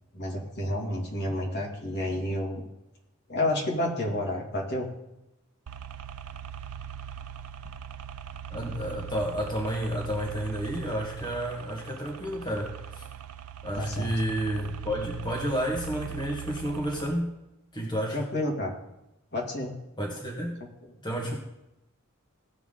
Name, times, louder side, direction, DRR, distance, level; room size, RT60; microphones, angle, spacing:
voice 1, 0.1-2.7 3.3-4.9 13.7-14.1 18.1-18.7 19.3-19.7, left 1 dB, 50° left, -1 dB, 2.5 m, -30 dB
sound 1, 5.7-17.1, right 8 dB, 90° right, 0.6 m, -41 dB
voice 2, 8.5-13.0 13.6-17.3 17.7-18.2 20.0-20.6 21.0-21.3, equal, 20° left, -2 dB, 1.6 m, -31 dB
17.5 x 5.9 x 3.8 m, 0.89 s
head